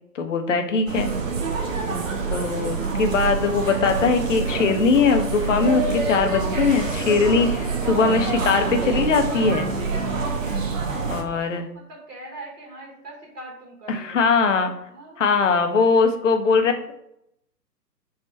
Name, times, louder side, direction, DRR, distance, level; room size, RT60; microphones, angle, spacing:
voice 1, 0.2-1.1 2.3-9.7 11.1-11.7 13.9-14.7 15.2-16.9, left 4 dB, 50° left, 6 dB, 0.5 m, -21 dB
sound 1, 0.9-11.2, right 4 dB, 55° right, 0.6 m, -26 dB
voice 2, 10.6-11.1 11.7-14.2 14.9-15.2, right 2 dB, 70° right, -3 dB, 1.1 m, -42 dB
3.4 x 2.1 x 4.2 m, 0.77 s
figure-of-eight pair, 135°, 49 cm